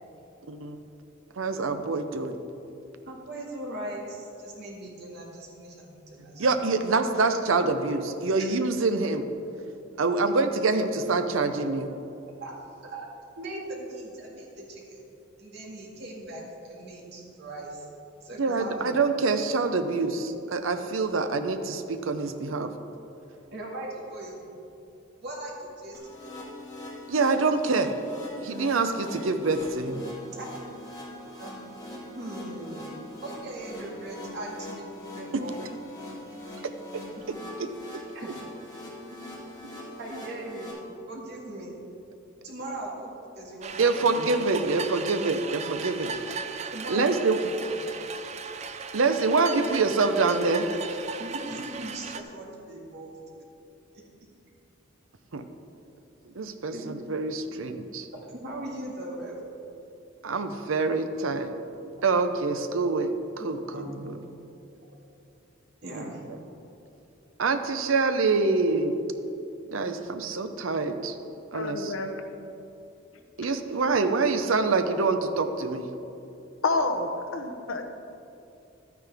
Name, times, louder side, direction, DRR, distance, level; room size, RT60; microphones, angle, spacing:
voice 1, 1.4-2.4 6.4-9.2 10.0-11.9 18.4-22.7 27.1-27.9 28.4-30.0 35.3-35.4 37.6-37.7 43.8-46.4 46.9-47.4 48.9-50.7 55.3-55.4 56.2-58.1 60.2-61.5 62.0-64.2 65.9-66.0 67.4-69.0 69.7-71.1 71.5-71.9 73.4-75.9, right 3 dB, 75° right, 8 dB, 0.7 m, -26 dB
voice 2, 3.1-6.5 12.4-12.5 12.9-13.1 13.4-15.0 15.4-17.9 18.2-19.0 23.5-24.4 25.2-26.3 30.4-30.5 31.4-31.8 32.1-32.9 33.2-35.6 37.2-37.3 38.1-38.3 40.0-40.8 41.1-41.7 42.4-44.2 44.7-44.8 46.7-47.8 51.2-53.1 56.7-57.0 57.5-57.6 58.3-59.4 63.7-64.1 65.8-66.2, right 1 dB, 55° right, -3 dB, 2.0 m, -39 dB
sound 1, 25.9-40.7, left 1 dB, 20° left, 2.1 m, -42 dB
sound 2, 43.6-52.2, right 5 dB, 35° right, 0.4 m, -37 dB
voice 3, 71.5-72.1 73.4-73.5 76.6-77.8, left 3 dB, 80° left, 6 dB, 0.9 m, -28 dB
12.0 x 9.3 x 3.5 m, 2.8 s
head